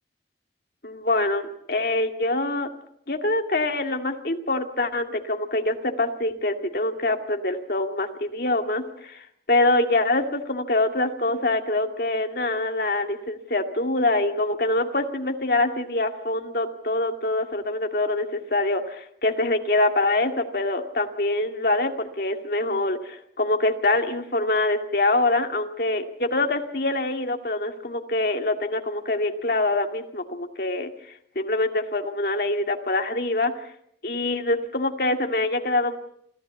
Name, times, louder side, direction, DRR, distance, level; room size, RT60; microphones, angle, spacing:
voice 1, 0.8-2.7 3.1-30.9 31.4-33.5 34.0-36.0, left 2 dB, 55° left, 5 dB, 2.2 m, -25 dB
26.5 x 15.0 x 8.3 m, 0.71 s
head